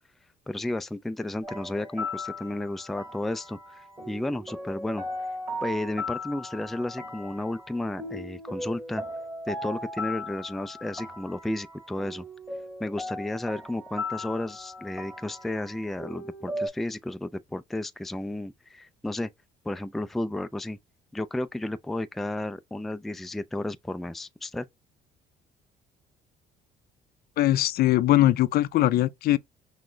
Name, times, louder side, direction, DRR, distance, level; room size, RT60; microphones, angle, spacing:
voice 1, 0.5-5.0 5.6-9.0 9.5-12.2 12.8-19.3 19.6-20.8 21.1-24.7, left 1 dB, ahead, 0.3 m, -33 dB
sound 1, 1.4-16.7, left 1 dB, 15° right, 1.9 m, -37 dB
voice 2, 27.4-29.4, left 14 dB, 65° left, 0.5 m, -21 dB
6.0 x 2.1 x 3.2 m
cardioid pair, 110°, 17 cm